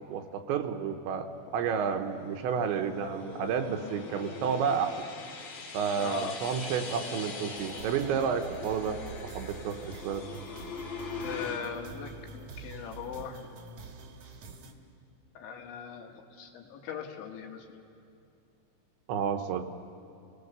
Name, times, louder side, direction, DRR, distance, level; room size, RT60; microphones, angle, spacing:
voice 1, 0.1-1.3 1.5-5.0 5.7-9.0 9.4-10.2 19.1-19.6, right 7 dB, 75° right, 6 dB, 3.0 m, -30 dB
sound 1, 1.5-11.6, left 4 dB, 45° left, 2.5 m, -42 dB
voice 2, 6.0-6.4 11.2-13.5 15.4-17.7, left 7 dB, 70° left, 2 dB, 3.8 m, -39 dB
sound 2, 7.5-14.7, right 5 dB, 55° right, 2.1 m, -46 dB
30.0 x 19.0 x 6.8 m, 2.6 s
omnidirectional pair, 5.7 m